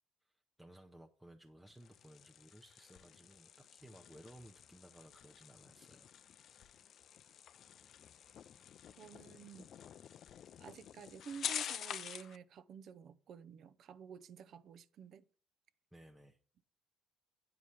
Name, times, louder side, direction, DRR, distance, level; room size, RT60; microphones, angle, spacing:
voice 1, 0.2-6.1 15.9-16.4, right 1 dB, 5° right, 0.7 m, -58 dB
sound 1, 1.7-12.4, left 9 dB, 55° left, 0.4 m, -48 dB
voice 2, 9.0-9.7 10.6-15.2, right 7 dB, 55° right, 0.6 m, -51 dB
9.6 x 4.9 x 5.7 m
cardioid pair, 110°, 0 cm